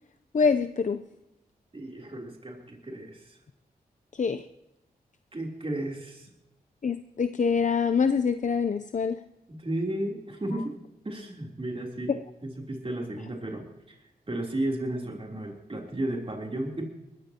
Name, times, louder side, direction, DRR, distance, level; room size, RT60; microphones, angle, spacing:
voice 1, 0.3-1.0 4.1-4.4 6.8-9.2 12.1-12.2, left 5 dB, 50° left, 10 dB, 0.7 m, -25 dB
voice 2, 1.7-3.4 5.3-6.3 9.5-10.7 11.0-12.1 12.4-14.0 14.3-16.8, right 1 dB, 35° right, 0 dB, 3.4 m, -33 dB
20.5 x 14.5 x 2.9 m, 0.91 s
cardioid pair, 45°, 16 cm